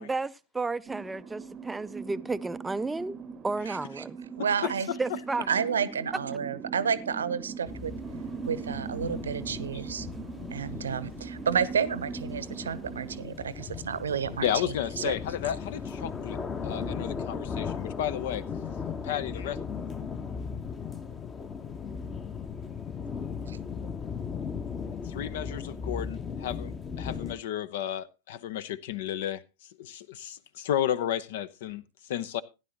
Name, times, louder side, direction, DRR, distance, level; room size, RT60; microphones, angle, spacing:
voice 1, 0.0-3.2 3.4-4.2 4.6-4.7 5.0-5.5, right 3 dB, 10° right, 0.5 m, -32 dB
sound 1, 0.9-13.2, right 5 dB, 25° right, 0.9 m, -41 dB
voice 2, 3.7-4.0 4.4-4.9 5.5-7.9 8.5-10.1 10.5-15.1 23.4-23.6, right 7 dB, 70° right, 0.8 m, -31 dB
voice 3, 4.4-5.2 14.4-18.4 19.0-19.6 25.0-29.4 29.8-32.4, left 10 dB, 55° left, 0.7 m, -33 dB
sound 2, 7.7-27.3, left 6 dB, 20° left, 1.1 m, -37 dB
16.0 x 10.5 x 2.9 m
figure-of-eight pair, 90°, 0 cm